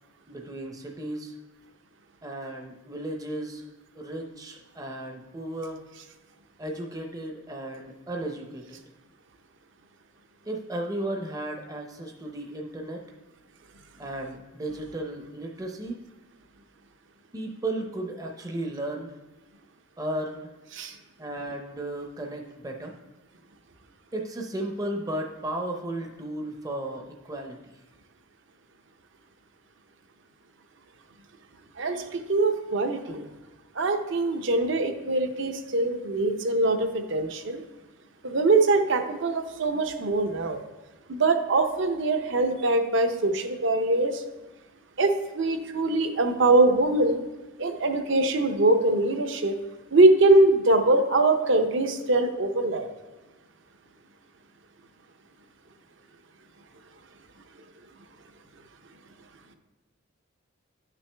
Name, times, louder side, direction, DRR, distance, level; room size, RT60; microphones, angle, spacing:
voice 1, 0.3-1.4 2.2-3.7 4.0-5.8 6.6-8.8 10.4-13.0 14.0-16.0 17.3-19.2 20.0-20.5 21.2-22.9 24.1-27.7, right 1 dB, 15° right, 1 dB, 0.6 m, -34 dB
voice 2, 31.8-33.3 33.8-37.6 38.2-40.6 41.1-44.2 45.0-47.2 47.6-49.6 49.9-52.9, right 2 dB, 55° right, 7 dB, 0.7 m, -23 dB
10.5 x 6.0 x 3.3 m, 1.1 s
head